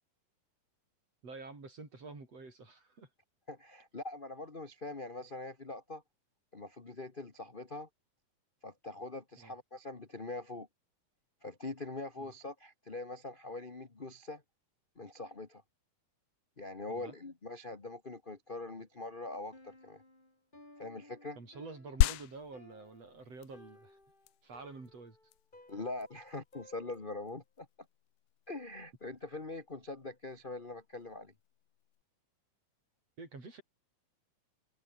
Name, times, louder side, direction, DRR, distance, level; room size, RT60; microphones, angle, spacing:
voice 1, 1.2-3.1 9.4-9.5 12.2-12.3 16.9-17.2 21.4-24.0 24.4-25.2 33.2-33.6, right 3 dB, 45° right, 7.2 m, -48 dB
voice 2, 3.5-6.0 6.5-7.9 8.6-10.7 11.4-14.4 15.0-15.6 16.6-20.0 20.8-21.4 25.7-27.7 28.5-31.3, left 2 dB, 35° left, 0.8 m, -43 dB
Piano, 19.5-27.4, left 1 dB, 15° left, 4.5 m, -60 dB
sound 1, 22.0-32.0, left 15 dB, 75° left, 2.1 m, -39 dB
omnidirectional pair, 4.0 m